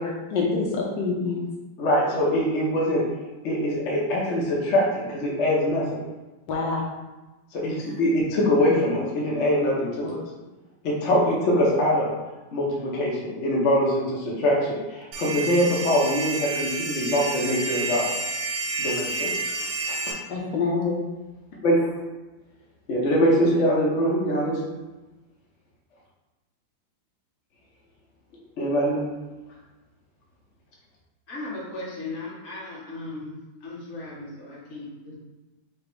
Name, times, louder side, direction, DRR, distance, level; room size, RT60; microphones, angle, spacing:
voice 1, 0.0-1.4 6.5-6.8 20.3-21.0, left 4 dB, 75° left, -2 dB, 1.3 m, -26 dB
voice 2, 1.8-3.0 3.4-6.0 7.5-10.2 10.8-12.1 12.5-18.1 18.8-19.5 19.9-20.1 21.6-22.0 22.9-24.8 28.6-29.0, equal, 55° left, -4 dB, 0.8 m, -23 dB
sound 1, 15.1-20.1, right 3 dB, 65° right, 1.0 m, -29 dB
voice 3, 31.3-35.2, left 2 dB, 40° left, -6 dB, 1.3 m, -37 dB
5.0 x 2.0 x 4.6 m, 1.1 s
omnidirectional pair, 2.1 m